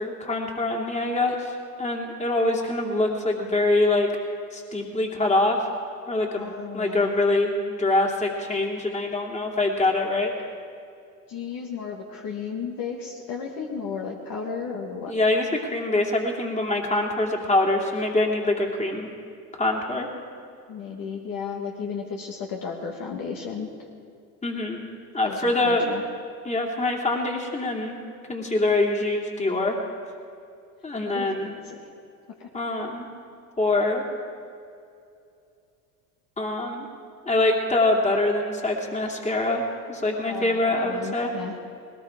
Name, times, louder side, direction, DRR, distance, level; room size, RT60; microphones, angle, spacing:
voice 1, 0.0-4.1 4.5-5.6 6.1-6.5 6.7-10.3 15.1-19.1 19.5-20.1 24.4-24.8 25.1-26.0 26.4-27.9 28.3-29.8 30.8-31.5 32.5-33.1 33.6-34.0 36.4-36.9 37.3-39.6 39.9-41.3, left 2 dB, 15° left, 0 dB, 2.8 m, -24 dB
voice 2, 6.3-7.1 11.3-15.1 20.7-23.7 25.2-26.0 31.1-31.8 32.4-32.5 40.2-41.5, left 6 dB, 50° left, 0 dB, 1.8 m, -34 dB
20.0 x 19.0 x 3.7 m, 2.5 s
hypercardioid pair, 75°, 44 cm